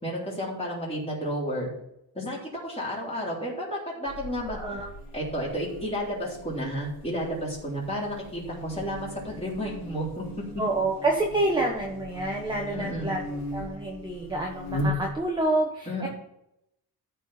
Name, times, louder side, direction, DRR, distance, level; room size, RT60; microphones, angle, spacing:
voice 1, 0.0-1.7 2.1-4.8 5.1-10.3 12.7-13.2 15.9-16.1, equal, 15° left, -5 dB, 3.8 m, -32 dB
Buzz, 4.1-15.5, left 2 dB, 45° left, 3.4 m, -38 dB
voice 2, 4.5-4.9 10.6-13.2 13.5-16.1, right 2 dB, 10° right, -1 dB, 1.2 m, -28 dB
14.0 x 4.7 x 5.6 m, 0.81 s
cardioid pair, 155°, 38 cm